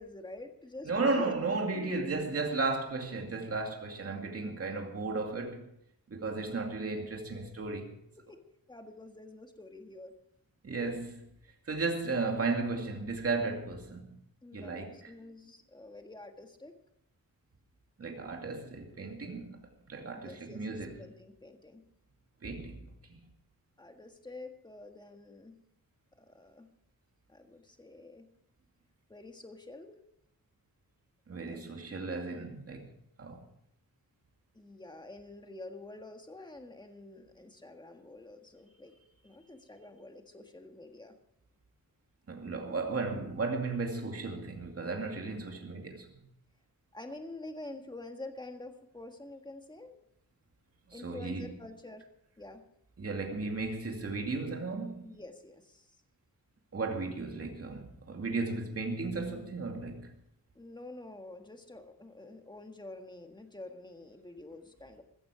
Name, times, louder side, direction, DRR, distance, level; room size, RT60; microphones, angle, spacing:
voice 1, 0.0-2.0 8.3-10.1 14.4-16.7 20.1-21.8 23.8-25.6 26.2-26.7 27.3-28.3 29.1-30.0 31.4-31.7 32.1-32.3 34.5-39.0 39.2-41.2 46.9-50.0 50.9-52.0 52.4-52.6 55.0-56.0 60.6-65.0, left 2 dB, 10° left, 1.6 m, -48 dB
voice 2, 0.8-5.7 6.1-7.9 10.6-11.3 11.7-14.2 14.5-15.1 18.0-19.6 19.9-21.1 22.4-22.8 23.1-23.2 31.3-32.9 33.2-33.4 42.3-46.1 51.0-51.5 53.0-55.0 56.7-60.1, right 3 dB, 40° right, 2.4 m, -34 dB
15.0 x 14.5 x 5.0 m
wide cardioid pair, 150°, 36 cm